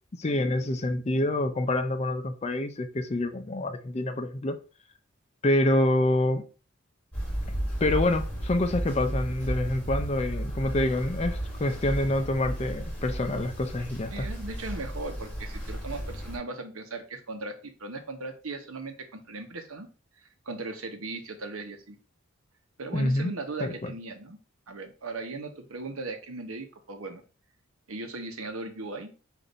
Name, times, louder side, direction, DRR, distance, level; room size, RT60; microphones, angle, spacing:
voice 1, 0.1-4.6 5.4-6.4 7.8-14.2 22.9-23.3 23.6-23.9, left 1 dB, 30° left, 0.4 m, -27 dB
sound 1, 7.1-16.4, right 1 dB, 5° left, 1.3 m, -34 dB
voice 2, 14.1-19.9 20.5-22.0 22.8-24.4 24.7-27.2 27.9-29.1, right 3 dB, 85° right, 0.9 m, -38 dB
5.1 x 2.6 x 4.0 m
head